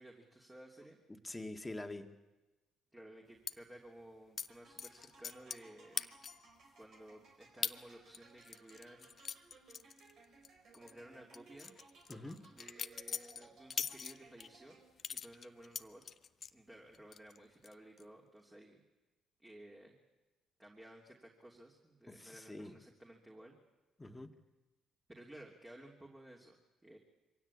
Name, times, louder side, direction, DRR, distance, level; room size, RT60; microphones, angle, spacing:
voice 1, 0.0-1.0 2.9-6.0 6.8-9.5 10.7-11.7 12.5-16.0 16.5-18.8 19.4-20.0 20.6-23.6 25.1-27.0, right 1 dB, 15° right, 0 dB, 3.1 m, -56 dB
voice 2, 1.1-2.1 12.1-12.5 22.1-22.8 24.0-24.3, left 2 dB, 15° left, 7 dB, 1.9 m, -46 dB
sound 1, 3.5-3.6 4.4-4.5 4.8-5.7 6.0-6.5 6.9-7.0 7.6-7.8 8.1-10.5 10.7-10.9 11.3-14.5 15.0-16.5 16.9-17.4 17.6-18.0, left 6 dB, 45° left, 0.7 m, -42 dB
sound 2, 4.5-15.2, right 4 dB, 60° right, 4.3 m, -63 dB
23.5 x 16.5 x 8.6 m, 1.1 s
hypercardioid pair, 55°, 0 cm